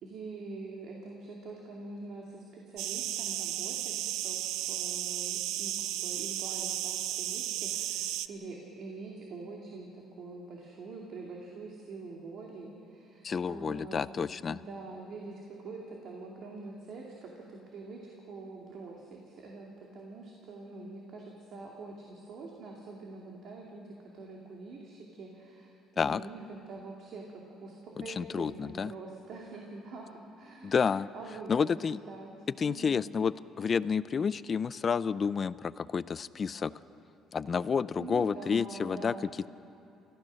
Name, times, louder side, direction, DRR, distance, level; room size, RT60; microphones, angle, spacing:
voice 1, 0.0-5.7 6.0-14.0 14.5-23.8 24.1-26.4 26.7-30.7 31.1-31.7 32.1-33.0 38.0-39.5, right 3 dB, 60° right, -1 dB, 2.5 m, -45 dB
sound 1, 2.8-8.3, right 13 dB, 90° right, 0.5 m, -34 dB
voice 2, 13.2-14.6 26.0-26.2 28.0-28.9 30.6-31.1 31.5-32.0 32.6-36.7 37.3-39.1, left 6 dB, 35° left, 17 dB, 0.4 m, -30 dB
28.5 x 15.0 x 6.4 m, 2.7 s
cardioid pair, 135°, 0 cm